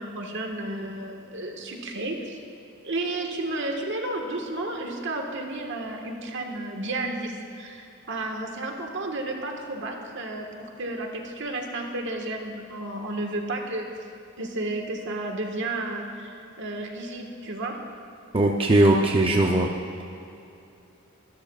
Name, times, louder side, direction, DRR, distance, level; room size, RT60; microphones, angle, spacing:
voice 1, 0.0-2.4 2.8-13.9 14.4-17.7, right 2 dB, 60° right, 2 dB, 1.5 m, -32 dB
voice 2, 18.3-19.7, right 1 dB, 25° right, 1 dB, 0.6 m, -19 dB
24.5 x 12.0 x 2.4 m, 2.8 s
head